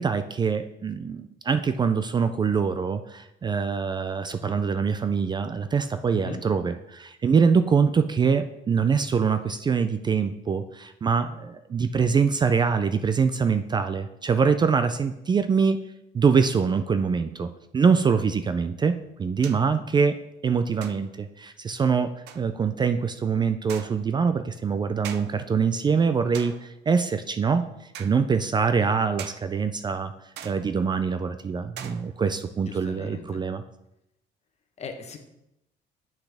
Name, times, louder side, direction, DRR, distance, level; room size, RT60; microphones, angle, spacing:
voice 1, 0.0-15.8 16.1-20.2 20.4-27.6 28.0-30.1 30.4-33.6, right 5 dB, 25° right, 10 dB, 0.4 m, -24 dB
voice 2, 6.1-6.4 32.7-33.4 34.8-35.2, left 4 dB, 40° left, 6 dB, 1.0 m, -38 dB
sound 1, 18.2-18.3 19.4-19.8 20.8-21.3 22.3-22.6 23.7-24.2 25.0-25.5 26.3-26.8 27.9-28.2 29.2-29.5 30.4-30.9 31.8-32.4, right 9 dB, 80° right, 0.6 m, -42 dB
8.0 x 5.9 x 3.4 m, 0.85 s
cardioid pair, 110°, 17 cm